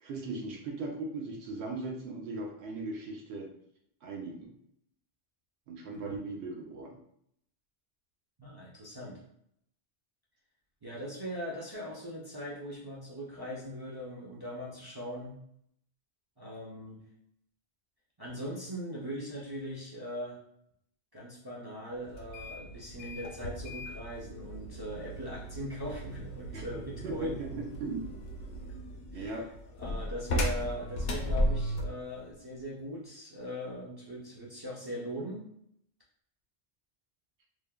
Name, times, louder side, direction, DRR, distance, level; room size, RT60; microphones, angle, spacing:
voice 1, 0.0-3.5 4.0-4.5 5.7-7.0 26.5-28.1 29.1-29.5, right 2 dB, 85° right, 1 dB, 0.9 m, -38 dB
voice 2, 8.4-9.2 10.8-15.4 16.4-17.0 18.2-20.4 21.1-27.4 29.1-29.4 29.8-35.5, equal, 40° right, -5 dB, 0.3 m, -40 dB
sound 1, 22.1-32.0, equal, 75° left, 0.8 m, -36 dB
3.1 x 2.1 x 2.2 m, 0.72 s
omnidirectional pair, 1.1 m